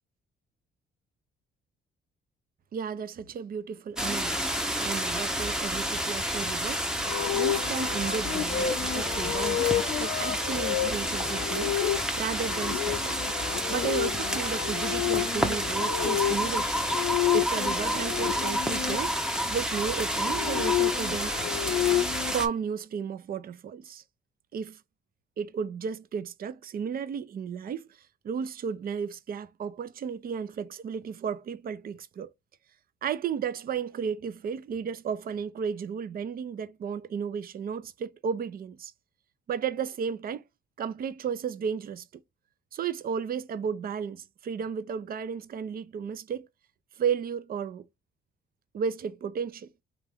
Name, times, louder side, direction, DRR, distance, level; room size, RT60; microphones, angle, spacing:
voice 1, 2.7-6.8 7.3-9.7 10.0-11.8 12.2-13.1 13.7-16.8 17.3-19.2 19.5-21.3 22.3-24.0 24.5-24.8 25.4-27.9 28.2-32.3 33.0-38.9 39.5-40.4 40.8-42.1 42.7-46.5 47.0-47.9 48.7-49.7, right 7 dB, 50° right, 0.5 m, -33 dB
sound 1, 4.0-22.5, equal, 5° right, 0.7 m, -30 dB
sound 2, 7.0-19.0 20.1-22.3, left 12 dB, 70° left, 0.6 m, -30 dB
3.4 x 2.4 x 3.5 m
cardioid pair, 90°, 20 cm